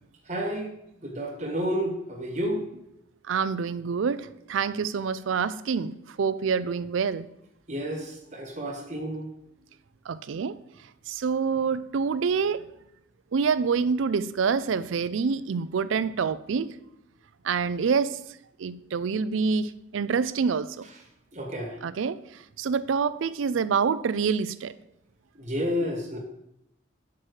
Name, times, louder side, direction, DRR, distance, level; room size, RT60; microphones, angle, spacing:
voice 1, 0.3-0.7 1.0-2.6 7.7-9.3 21.3-21.8 25.4-26.2, equal, 35° right, 1 dB, 1.5 m, -30 dB
voice 2, 3.3-7.3 10.1-10.6 11.1-12.6 13.3-16.7 17.4-18.2 18.6-20.9 21.8-22.2 22.6-24.7, right 5 dB, 75° right, 15 dB, 0.4 m, -26 dB
6.0 x 4.8 x 6.3 m, 0.80 s
head